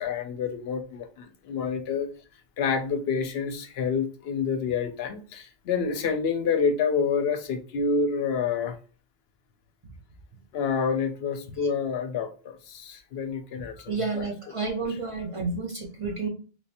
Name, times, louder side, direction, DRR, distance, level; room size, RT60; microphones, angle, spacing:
voice 1, 0.0-2.1 2.6-8.8 10.5-14.3, left 5 dB, 80° left, 8 dB, 0.8 m, -28 dB
voice 2, 13.9-16.3, right 4 dB, 35° right, 1 dB, 0.6 m, -30 dB
3.3 x 3.1 x 2.9 m, 0.36 s
omnidirectional pair, 1.1 m